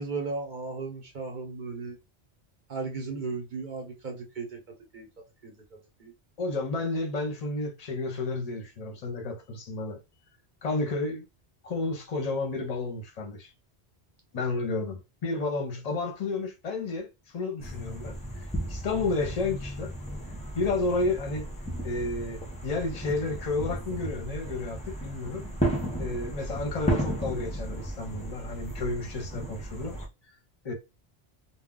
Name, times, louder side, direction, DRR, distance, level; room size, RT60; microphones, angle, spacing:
voice 1, 0.0-2.0 2.7-5.1 5.4-6.1, right 4 dB, 50° right, 0.8 m, -36 dB
voice 2, 6.4-10.0 10.6-11.2 11.6-13.5 14.3-19.9 20.5-21.5 21.8-25.5 26.0-30.0 30.6-30.7, left 3 dB, 40° left, 0.7 m, -31 dB
sound 1, 17.6-30.1, right 1 dB, 10° left, 0.4 m, -34 dB
2.3 x 2.1 x 3.6 m
omnidirectional pair, 1.1 m